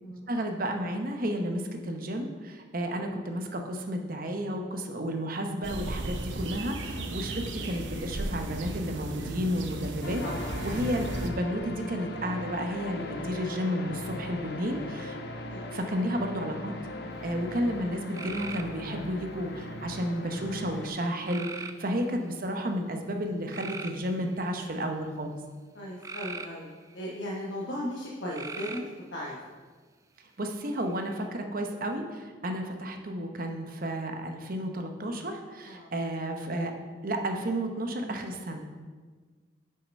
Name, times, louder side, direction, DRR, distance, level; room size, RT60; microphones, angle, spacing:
voice 1, 0.3-10.2 10.6-15.2 15.7-16.7 17.2-25.3 30.4-36.7 37.0-38.7, equal, 50° right, 4 dB, 0.8 m, -32 dB
sound 1, 5.6-11.3, right 2 dB, 80° right, 0.7 m, -35 dB
sound 2, 10.0-20.9, left 2 dB, 60° left, 0.7 m, -39 dB
voice 2, 10.2-10.6 15.5-15.7 22.2-22.3 25.7-28.9 29.1-29.4 35.7-35.9, left 1 dB, 75° left, -4 dB, 1.0 m, -37 dB
sound 3, 18.1-19.1 21.3-22.1 23.5-24.8 26.0-27.2 28.3-29.0 30.7-31.2, right 4 dB, 20° right, 0.3 m, -41 dB
6.5 x 5.7 x 5.2 m, 1.4 s
head